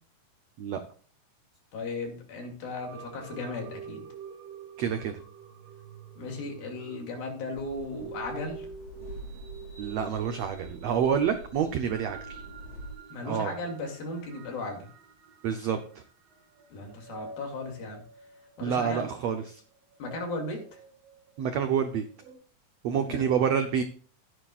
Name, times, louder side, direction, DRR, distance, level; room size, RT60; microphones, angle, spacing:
voice 1, 1.7-4.1 6.2-8.7 13.1-14.9 16.7-18.0 18.6-19.1 20.0-20.6 22.9-23.2, left 2 dB, 85° left, 2 dB, 4.3 m, -36 dB
sound 1, 2.8-22.3, right 6 dB, 55° right, 2.6 m, -48 dB
voice 2, 4.8-5.1 9.8-12.4 13.2-13.5 15.4-16.0 18.6-19.6 21.4-22.0 22.8-23.8, right 7 dB, 85° right, 7 dB, 1.4 m, -28 dB
sound 2, 7.5-12.9, right 1 dB, 65° left, 5.4 m, -45 dB
14.5 x 10.0 x 2.4 m, 0.42 s
omnidirectional pair, 4.1 m